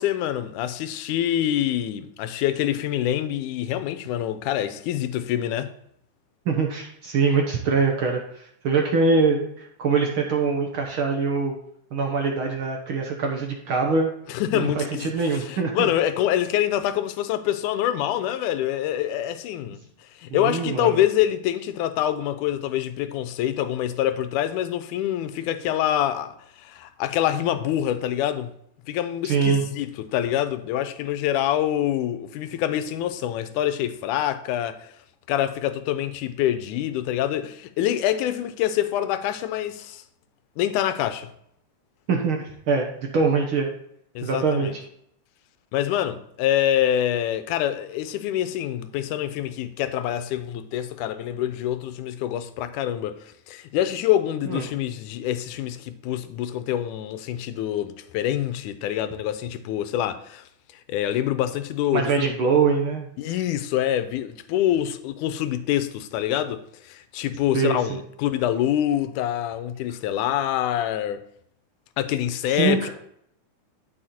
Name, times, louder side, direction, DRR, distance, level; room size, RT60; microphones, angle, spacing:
voice 1, 0.0-5.7 14.3-19.8 20.2-28.5 28.9-34.9 35.3-40.0 40.6-41.3 44.2-44.8 45.7-60.4 60.9-62.3 63.2-71.3 72.0-72.9, left 11 dB, 80° left, 2.1 m, -26 dB
voice 2, 6.4-11.6 11.9-14.1 14.5-15.9 20.3-21.0 29.2-29.6 42.1-43.7 44.2-44.7 54.4-54.6 61.9-63.3 67.5-68.0 72.5-72.9, right 4 dB, 60° right, 1.5 m, -23 dB
13.0 x 4.8 x 4.3 m
omnidirectional pair, 3.7 m